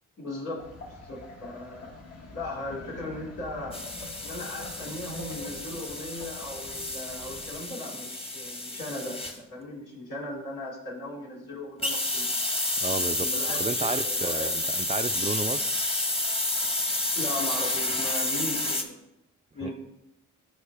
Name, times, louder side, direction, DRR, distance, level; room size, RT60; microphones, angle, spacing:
voice 1, 0.2-1.9 2.3-3.9 4.2-12.4 12.8-14.5 17.1-19.0 19.5-19.7, left 1 dB, 90° left, -5 dB, 2.9 m, -38 dB
sound 1, 0.6-7.6, left 2 dB, 55° left, 1.6 m, -45 dB
sound 2, 3.7-9.4 11.8-18.8, left 2 dB, 20° left, 1.2 m, -30 dB
voice 2, 12.8-13.3 13.6-15.6 19.6-19.7, right 4 dB, 20° right, 11 dB, 0.4 m, -32 dB
12.5 x 4.6 x 3.5 m, 0.87 s
cardioid pair, 80°, 30 cm